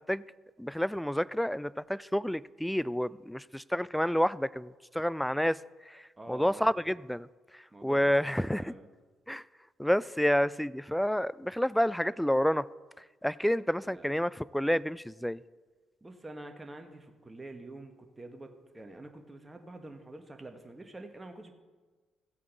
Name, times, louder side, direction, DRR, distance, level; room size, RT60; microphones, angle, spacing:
voice 1, 0.6-5.6 5.9-6.0 6.3-7.3 7.8-8.7 9.3-9.4 9.8-12.7 13.2-15.4, equal, 5° left, 20 dB, 0.3 m, -29 dB
voice 2, 6.2-6.7 7.7-8.9 13.8-14.1 16.0-18.5 18.7-21.5, right 2 dB, 20° right, 5 dB, 1.4 m, -47 dB
15.5 x 8.4 x 4.1 m, 1.3 s
hypercardioid pair, 45°, 0 cm